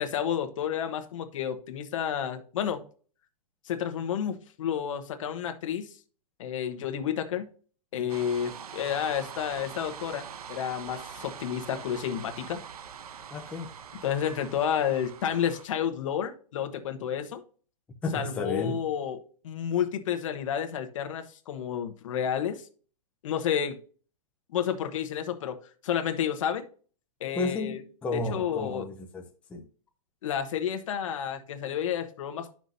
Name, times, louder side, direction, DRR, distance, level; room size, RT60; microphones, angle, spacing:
voice 1, 0.0-2.8 3.7-5.9 6.4-7.5 7.9-12.6 14.0-17.4 18.1-19.2 19.4-22.6 23.2-23.8 24.5-25.6 25.8-26.6 27.2-27.8 28.3-28.8 30.2-32.5, left 9 dB, 60° left, 1.2 m, -30 dB
sound 1, 8.1-15.7, right 7 dB, 85° right, 0.9 m, -43 dB
voice 2, 13.3-13.7 18.0-18.8 27.3-29.2 29.5-29.6, left 2 dB, 5° left, 0.6 m, -32 dB
11.0 x 6.0 x 2.7 m
hypercardioid pair, 160°, 19 cm